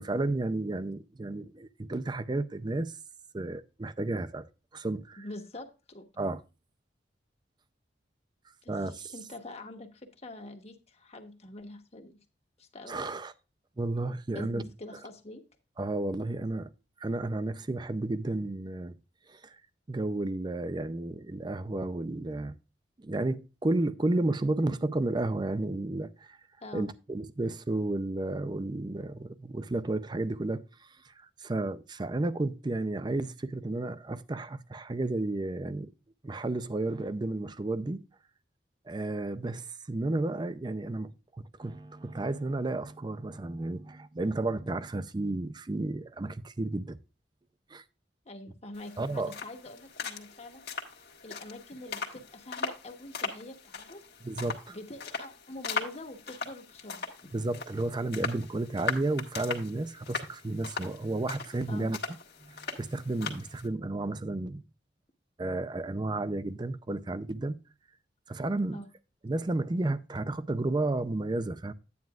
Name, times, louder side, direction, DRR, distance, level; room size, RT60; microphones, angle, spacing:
voice 1, 0.0-3.0 3.3-4.5 4.7-5.2 6.2-6.4 8.7-9.1 12.9-13.3 13.8-14.6 15.8-16.7 17.0-19.0 19.3-19.6 19.9-22.6 23.0-26.4 26.7-35.9 36.2-38.0 38.9-47.0 47.7-47.8 49.0-49.3 54.2-54.8 57.3-62.0 62.4-64.6 65.4-67.6 68.3-68.8 69.2-71.7, right 2 dB, 25° right, 0.5 m, -32 dB
voice 2, 5.2-6.0 8.6-8.8 9.1-12.2 12.6-13.0 14.3-15.4 26.6-26.9 48.2-50.6 51.2-54.0 54.7-57.1 61.7-61.9 68.7-68.9, left 1 dB, 35° left, 1.2 m, -45 dB
sound 1, 48.7-63.7, left 5 dB, 60° left, 1.5 m, -39 dB
9.5 x 9.1 x 2.4 m
head